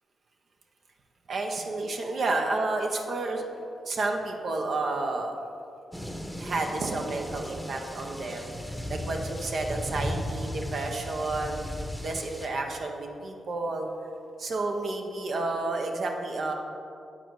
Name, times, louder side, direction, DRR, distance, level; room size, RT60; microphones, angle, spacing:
voice 1, 1.3-3.5 3.9-5.4 6.4-11.6 12.0-13.9 14.4-16.5, right 2 dB, 65° right, 2 dB, 0.8 m, -31 dB
sound 1, 5.9-12.5, equal, ahead, 0.9 m, -36 dB
8.7 x 4.0 x 4.7 m, 2.6 s
supercardioid pair, 45°, 0 cm